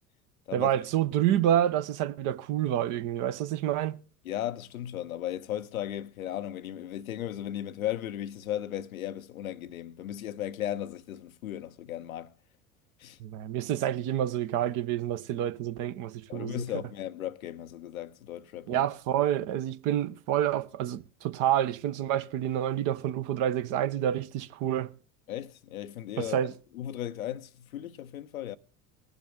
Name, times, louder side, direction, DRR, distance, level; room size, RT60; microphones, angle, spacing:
voice 1, 0.5-4.0 13.2-16.6 18.7-24.9 26.2-26.5, right 11 dB, 45° right, 0.9 m, -28 dB
voice 2, 4.2-12.3 13.0-13.2 16.3-18.9 25.3-26.4 26.7-28.6, left 12 dB, 75° left, 0.7 m, -36 dB
20.5 x 7.1 x 3.7 m
figure-of-eight pair, 70°, 42 cm